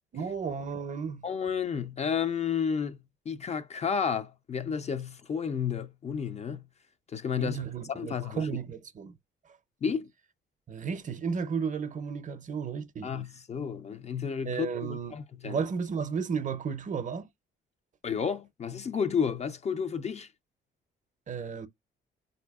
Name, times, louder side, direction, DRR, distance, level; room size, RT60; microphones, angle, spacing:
voice 1, 0.1-1.2 7.4-9.1 9.5-9.6 10.7-13.1 14.5-15.1 15.4-17.3 21.3-21.7, right 6 dB, 40° right, 0.5 m, -33 dB
voice 2, 1.2-3.0 3.3-6.7 7.1-7.6 7.9-8.5 9.8-10.1 13.0-15.6 18.0-20.3, left 7 dB, 35° left, 0.4 m, -31 dB
3.9 x 2.7 x 2.2 m
cardioid pair, 90°, 20 cm